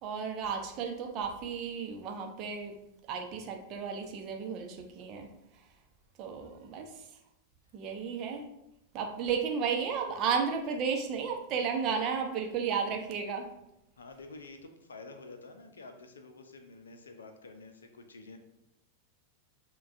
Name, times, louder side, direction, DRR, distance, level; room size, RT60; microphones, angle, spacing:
voice 1, 0.0-2.8 3.1-5.3 6.2-7.1 7.7-8.5 8.9-13.5, right 6 dB, 35° right, 3 dB, 0.7 m, -33 dB
voice 2, 6.3-6.7 14.0-18.4, left 3 dB, 70° left, 6 dB, 0.5 m, -49 dB
6.8 x 2.3 x 2.6 m, 0.85 s
figure-of-eight pair, 90°, 0 cm